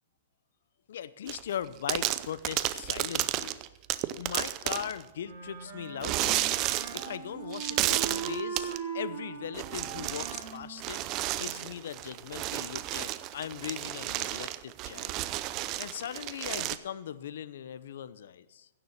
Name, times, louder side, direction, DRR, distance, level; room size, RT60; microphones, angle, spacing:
voice 1, 0.9-3.6 4.1-6.5 6.9-15.2 15.8-18.7, left 9 dB, 70° left, 16 dB, 0.7 m, -39 dB
sound 1, 1.3-1.5 1.9-5.0 6.0-7.2 7.5-8.8 9.5-10.5 10.8-16.8, right 15 dB, 30° right, 0.5 m, -32 dB
Wind instrument woodwind instrument, 5.2-11.8, right 7 dB, 55° right, 5.8 m, -40 dB
16.0 x 7.1 x 7.1 m, 1.1 s
hypercardioid pair, 160°, 0 cm